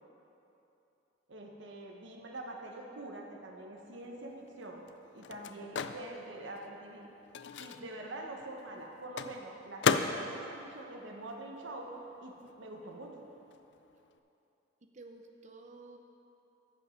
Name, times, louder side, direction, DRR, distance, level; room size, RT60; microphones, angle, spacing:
voice 1, 1.3-4.8 5.1-7.1 7.6-11.9 12.2-13.1, right 1 dB, 80° right, 1 dB, 1.1 m, -45 dB
Microwave oven, 3.9-12.0 12.3-14.2, left 6 dB, 65° left, 0.4 m, -37 dB
voice 2, 14.8-16.0, right 3 dB, 40° right, 4 dB, 0.7 m, -52 dB
14.0 x 5.4 x 5.1 m, 2.9 s
head